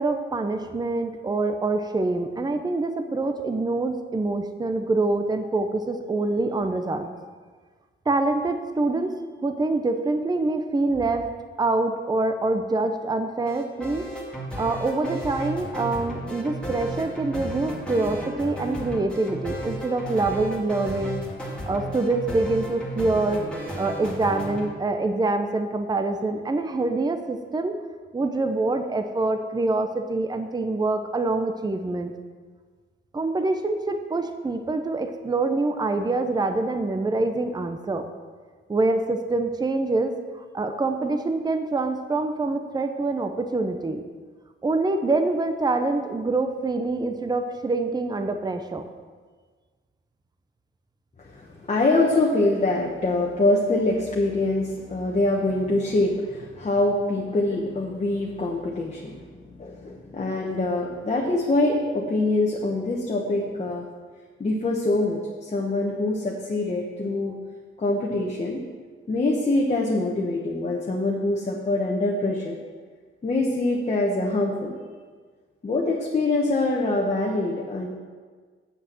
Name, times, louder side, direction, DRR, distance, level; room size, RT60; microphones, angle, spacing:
voice 1, 0.0-7.1 8.1-9.1 9.4-11.3 11.6-14.1 14.4-21.2 21.7-23.4 23.8-27.8 28.1-32.1 33.1-38.0 38.7-44.0 44.6-48.8, right 2 dB, 20° right, 7 dB, 0.7 m, -25 dB
sound 1, 13.5-24.7, right 1 dB, 5° left, 2.2 m, -34 dB
voice 2, 51.2-59.2 59.5-63.9 64.4-67.4 67.8-68.6 69.1-72.6 73.2-74.7 75.6-77.9, left 2 dB, 30° left, -2 dB, 1.2 m, -24 dB
7.9 x 6.5 x 7.7 m, 1.5 s
cardioid pair, 115°, 21 cm